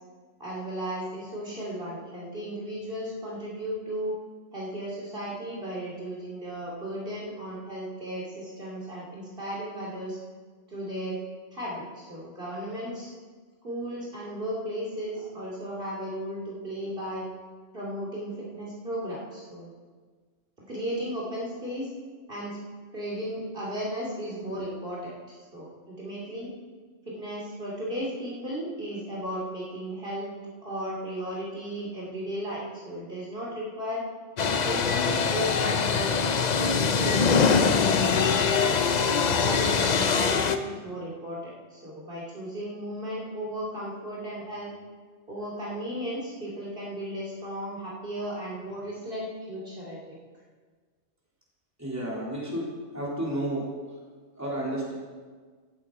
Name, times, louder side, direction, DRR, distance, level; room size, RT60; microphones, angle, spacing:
voice 1, 0.4-4.2 4.5-10.2 10.7-11.2 11.5-13.1 13.6-17.3 17.7-19.7 20.7-21.9 22.3-22.6 22.9-26.5 27.1-30.3 30.6-34.0 34.4-38.8 39.2-44.7 45.3-50.2, equal, 45° right, -6 dB, 2.9 m, -35 dB
sound 1, 34.4-40.6, left 5 dB, 45° left, 0.6 m, -23 dB
voice 2, 51.8-52.6 52.9-53.6 54.4-54.9, right 1 dB, 15° right, -6 dB, 3.4 m, -31 dB
16.0 x 8.3 x 4.8 m, 1.5 s
omnidirectional pair, 1.3 m